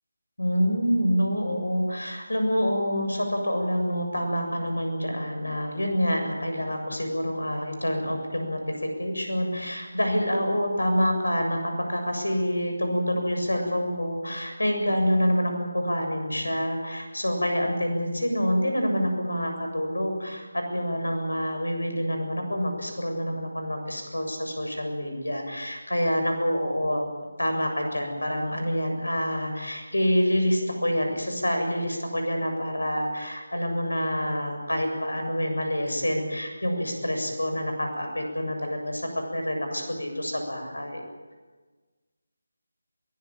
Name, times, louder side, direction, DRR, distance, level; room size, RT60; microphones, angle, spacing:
voice 1, 0.4-27.1 27.4-41.1, equal, 70° left, 5 dB, 7.3 m, -27 dB
22.5 x 18.5 x 9.1 m, 1.4 s
figure-of-eight pair, 155°, 0 cm